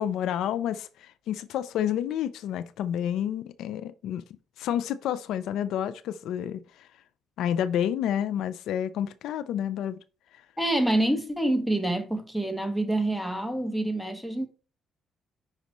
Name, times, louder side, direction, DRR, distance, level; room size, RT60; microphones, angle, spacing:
voice 1, 0.0-4.2 4.6-6.9 7.4-10.0 10.3-10.4, left 10 dB, 85° left, 0.4 m, -29 dB
voice 2, 10.6-14.5, right 1 dB, 5° left, 1.5 m, -27 dB
9.6 x 5.1 x 3.0 m
cardioid pair, 90°, 0 cm